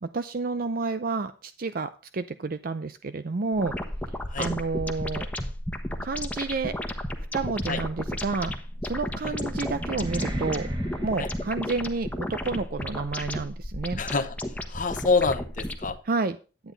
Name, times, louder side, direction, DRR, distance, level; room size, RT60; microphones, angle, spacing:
voice 1, 0.0-3.7 4.4-5.3 6.0-6.7 7.3-8.5 8.8-10.7 11.0-14.0 16.1-16.4, right 3 dB, 55° right, 11 dB, 0.5 m, -30 dB
sound 1, 3.6-15.9, left 1 dB, 10° left, 1.1 m, -33 dB
sound 2, 8.7-12.2, right 1 dB, 25° right, 1.4 m, -37 dB
voice 2, 14.0-14.4 14.7-16.0, left 4 dB, 45° left, 9 dB, 1.0 m, -26 dB
10.5 x 9.1 x 3.9 m, 0.35 s
head